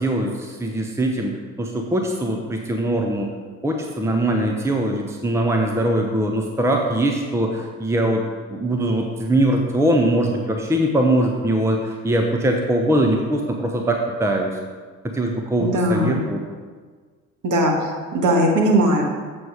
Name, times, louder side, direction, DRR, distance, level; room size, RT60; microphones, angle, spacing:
voice 1, 0.0-1.3 1.6-3.3 3.6-8.2 8.5-14.5 15.0-16.4, right 1 dB, 5° right, 2 dB, 0.9 m, -21 dB
voice 2, 15.6-16.2 17.4-19.0, right 1 dB, 45° right, 0 dB, 1.8 m, -19 dB
7.8 x 5.5 x 4.8 m, 1.5 s
hypercardioid pair, 55°, 42 cm